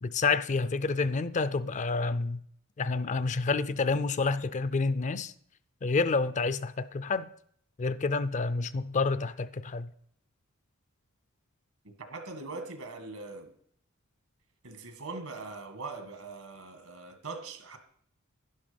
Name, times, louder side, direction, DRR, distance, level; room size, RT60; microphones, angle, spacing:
voice 1, 0.0-2.4 2.8-5.3 5.8-7.3 7.8-9.9, left 4 dB, 35° left, 0.4 m, -29 dB
voice 2, 11.8-13.5 14.6-17.8, right 3 dB, 75° right, 1.9 m, -41 dB
11.0 x 11.0 x 5.2 m
head